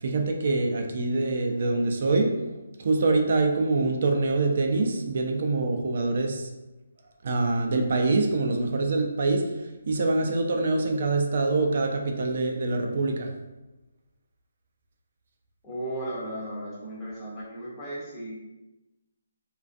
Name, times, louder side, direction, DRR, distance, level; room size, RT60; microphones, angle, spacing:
voice 1, 0.0-2.3 2.8-6.5 7.2-13.3, right 3 dB, 50° right, 3 dB, 0.3 m, -25 dB
voice 2, 15.6-18.4, right 1 dB, 10° left, -8 dB, 0.5 m, -35 dB
2.4 x 2.2 x 2.4 m, 1.0 s
hypercardioid pair, 170°, 0 cm